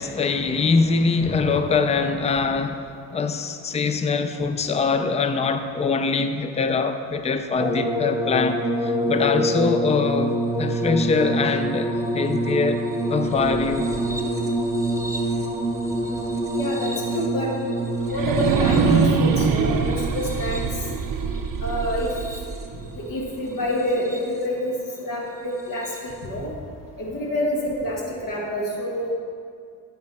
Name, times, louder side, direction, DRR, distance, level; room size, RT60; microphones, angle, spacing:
voice 1, 0.0-2.8 3.1-12.8 13.1-13.9, left 4 dB, 20° left, 8 dB, 0.4 m, -23 dB
sound 1, 7.6-22.8 23.7-24.4 25.8-26.0, right 1 dB, 10° right, 1.0 m, -27 dB
sound 2, 13.2-16.1 16.6-16.7 18.1-23.1, right 5 dB, 70° right, 0.7 m, -25 dB
voice 2, 16.0-17.5 18.1-20.6 21.6-22.1 22.9-24.7 25.0-26.5 27.0-29.1, left 1 dB, 65° left, -3 dB, 1.5 m, -27 dB
8.0 x 6.8 x 4.2 m, 2.2 s
cardioid pair, 90°, 35 cm